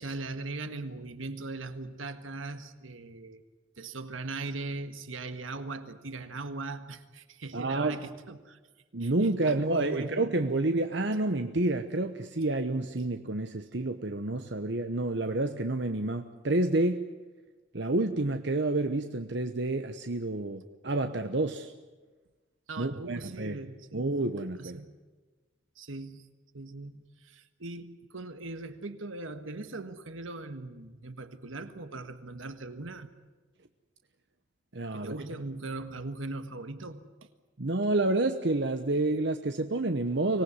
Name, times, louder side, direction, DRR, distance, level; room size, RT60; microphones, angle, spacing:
voice 1, 0.0-3.4 3.8-8.6 9.0-10.2 22.7-24.1 24.6-25.0 25.8-26.3 26.5-33.1 34.9-37.3, right 3 dB, 90° right, 9 dB, 1.6 m, -40 dB
voice 2, 7.5-8.0 8.9-17.0 17.7-21.7 22.8-23.6 23.9-24.8 34.7-35.1 37.6-40.4, right 2 dB, 60° right, 7 dB, 1.0 m, -29 dB
25.0 x 18.5 x 9.7 m, 1.3 s
head